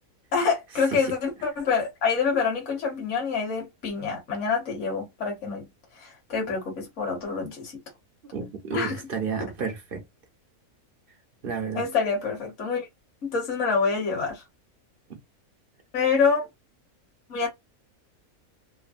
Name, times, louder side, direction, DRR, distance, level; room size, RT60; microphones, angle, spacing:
voice 1, 0.3-5.7 5.9-7.8 8.7-9.0 11.7-12.8 13.2-14.4 15.9-16.5 17.3-17.5, left 5 dB, 55° left, 1.4 m, -26 dB
voice 2, 8.3-10.0 11.4-11.9 15.1-15.2, right 6 dB, 50° right, 0.7 m, -31 dB
3.1 x 2.1 x 2.4 m
omnidirectional pair, 1.5 m